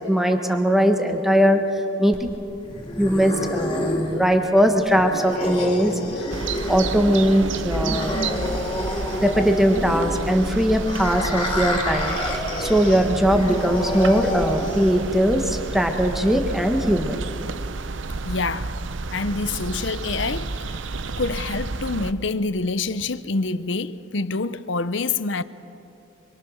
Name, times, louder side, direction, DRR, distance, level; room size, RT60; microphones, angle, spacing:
voice 1, 0.0-1.6 2.0-2.3 3.0-6.2 6.7-8.3 9.2-17.2, equal, ahead, 1.4 m, -20 dB
sound 1, 2.1-15.1, left 1 dB, 25° left, 3.7 m, -29 dB
sound 2, 6.3-22.1, right 3 dB, 70° right, 0.7 m, -31 dB
voice 2, 18.2-18.7 19.1-20.8 21.2-25.4, left 3 dB, 65° left, 0.8 m, -26 dB
25.5 x 23.0 x 6.5 m
head